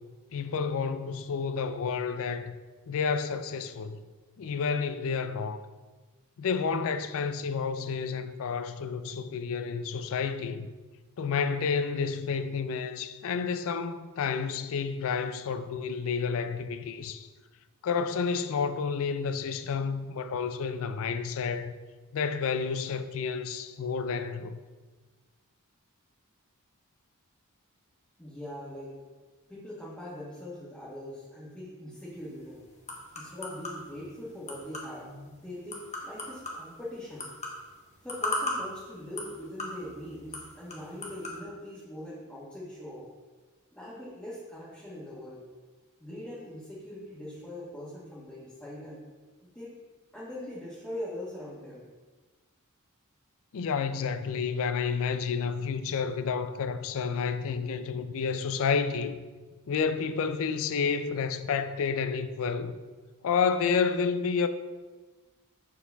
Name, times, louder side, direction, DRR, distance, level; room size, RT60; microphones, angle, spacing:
voice 1, 0.3-2.6 2.9-4.0 4.4-5.6 6.4-10.7 11.2-17.3 17.8-21.7 22.1-24.6 53.5-59.2 59.7-62.7 63.2-64.5, left 5 dB, 65° left, 0.4 m, -30 dB
voice 2, 28.2-29.0 29.5-32.6 33.1-37.3 38.0-43.1 43.7-45.4 46.0-49.0 49.4-49.7 50.1-51.9, left 1 dB, 5° left, 1.3 m, -42 dB
sound 1, 32.0-41.4, left 1 dB, 30° left, 1.1 m, -39 dB
6.5 x 4.7 x 3.4 m
head